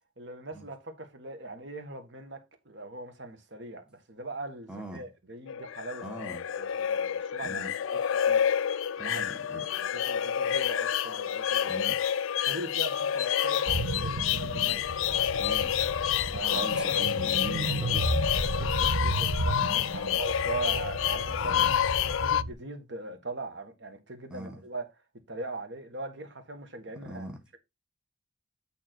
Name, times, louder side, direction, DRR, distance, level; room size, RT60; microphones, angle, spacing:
voice 1, 0.2-6.0 6.6-7.7 8.2-8.4 9.0-9.2 9.5-11.8 12.5-14.9 16.3-17.1 18.4-21.6 22.0-24.9 25.3-27.3, right 2 dB, 60° right, 1.5 m, -40 dB
voice 2, 4.7-5.1 6.0-6.5 7.4-7.7 9.0-9.6 11.7-12.0 15.4-15.7 16.5-18.5 19.9-20.2 21.4-21.8 24.3-24.6 27.0-27.4, right 2 dB, 5° right, 1.2 m, -42 dB
sound 1, 5.5-22.4, left 9 dB, 75° left, 0.4 m, -28 dB
sound 2, 13.7-22.5, right 2 dB, 85° right, 1.0 m, -33 dB
9.1 x 3.7 x 4.4 m
head